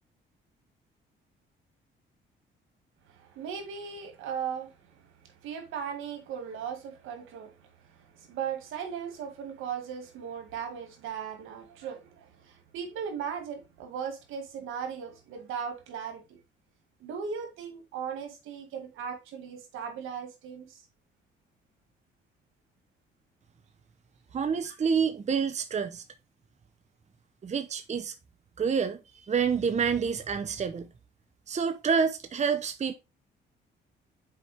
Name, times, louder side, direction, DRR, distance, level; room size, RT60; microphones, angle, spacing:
voice 1, 3.1-4.9 5.4-7.7 8.0-16.4 17.0-20.8 24.7-24.8, right 7 dB, 90° right, 2.0 m, -37 dB
voice 2, 24.3-26.0 27.4-28.1 28.6-29.0 29.3-30.9 31.5-32.9, right 6 dB, 35° right, 0.8 m, -28 dB
7.6 x 4.6 x 3.4 m
cardioid pair, 90°, 20 cm